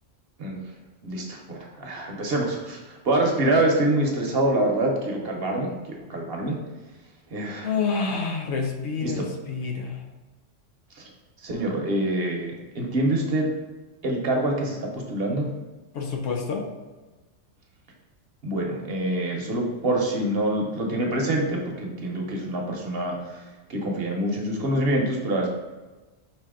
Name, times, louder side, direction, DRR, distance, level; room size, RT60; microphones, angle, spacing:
voice 1, 1.0-6.6 7.3-7.7 9.0-9.3 11.0-11.1 11.4-13.5 14.0-15.5 18.4-23.4 23.7-25.5, right 1 dB, 55° right, 0 dB, 0.9 m, -26 dB
voice 2, 7.6-10.0 15.9-16.6, left 5 dB, 75° left, 2 dB, 1.1 m, -28 dB
5.4 x 2.8 x 3.6 m, 1.2 s
omnidirectional pair, 1.3 m